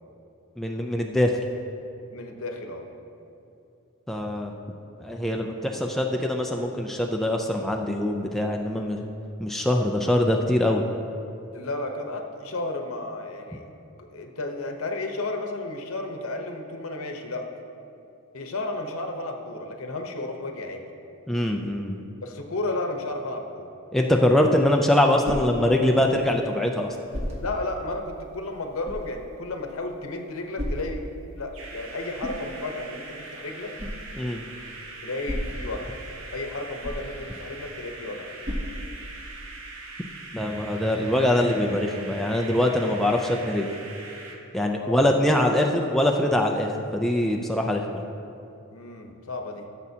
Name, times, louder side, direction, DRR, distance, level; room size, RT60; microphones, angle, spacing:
voice 1, 0.6-1.4 4.1-4.5 5.0-9.1 9.4-10.8 21.3-22.0 23.9-27.0 34.2-34.4 40.3-43.7 44.5-47.8, left 1 dB, ahead, 1 dB, 0.3 m, -23 dB
voice 2, 2.1-2.9 11.5-13.6 14.0-17.5 18.3-20.8 22.2-23.6 27.3-31.1 31.3-33.7 35.0-35.9 36.3-38.3 44.8-45.1 48.7-49.7, left 2 dB, 75° left, 4 dB, 0.9 m, -33 dB
sound 1, 24.6-39.5, equal, 30° right, 1.1 m, -38 dB
sound 2, 31.5-44.4, right 3 dB, 70° right, 1.1 m, -42 dB
15.0 x 7.2 x 2.8 m, 2.7 s
head